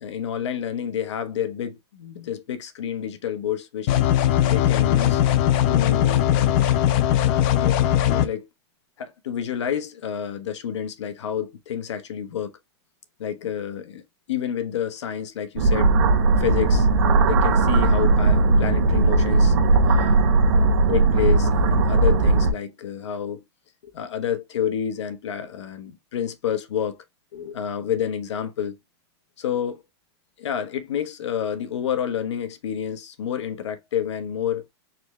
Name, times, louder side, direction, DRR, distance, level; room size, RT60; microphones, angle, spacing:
voice 1, 0.0-3.9 4.5-5.2 5.7-7.0 7.2-7.8 8.1-8.5 9.0-12.5 13.2-15.9 16.4-19.5 19.8-20.2 20.9-23.4 23.8-27.0 27.3-28.8 29.4-29.8 30.4-34.7, left 9 dB, 90° left, 1.1 m, -29 dB
sound 1, 3.9-8.3, left 11 dB, 25° left, 0.4 m, -19 dB
sound 2, 15.6-22.5, right 3 dB, 60° right, 1.3 m, -18 dB
4.3 x 3.2 x 3.1 m
supercardioid pair, 175°, 14 cm